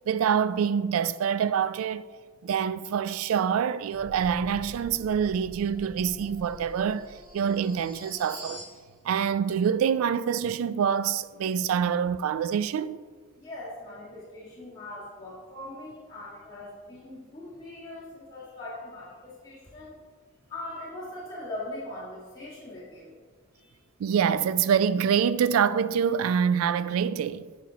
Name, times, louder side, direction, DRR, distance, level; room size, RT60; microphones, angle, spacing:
voice 1, 0.1-2.0 2.4-7.1 7.3-8.6 9.0-13.0 24.0-27.5, right 7 dB, 90° right, 0.3 m, -26 dB
sound 1, 3.9-8.7, equal, 40° right, 2.1 m, -45 dB
voice 2, 13.4-20.0 20.5-23.2 23.5-23.8, left 1 dB, 15° left, 1.6 m, -41 dB
9.0 x 5.6 x 2.8 m
head